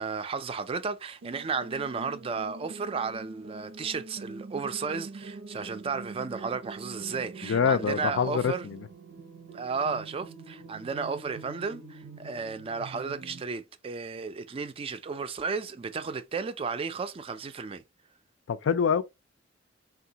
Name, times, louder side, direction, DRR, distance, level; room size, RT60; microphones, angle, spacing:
voice 1, 0.0-8.7 9.5-17.8, right 5 dB, 30° right, 0.3 m, -33 dB
sound 1, 1.2-13.4, right 3 dB, 85° right, 0.6 m, -44 dB
voice 2, 7.4-8.9 18.5-19.0, left 6 dB, 80° left, 0.4 m, -25 dB
3.6 x 2.3 x 2.7 m
head